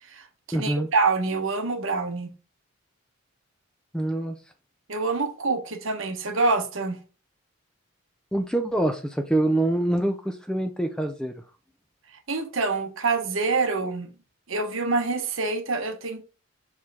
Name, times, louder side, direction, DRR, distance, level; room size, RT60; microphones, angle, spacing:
voice 1, 0.0-2.3 4.9-7.0 12.3-14.1 14.5-16.2, right 3 dB, 65° right, 1.0 m, -26 dB
voice 2, 0.5-0.9 3.9-4.4 8.3-11.3, right 1 dB, 5° left, 0.5 m, -25 dB
5.7 x 4.8 x 3.5 m
head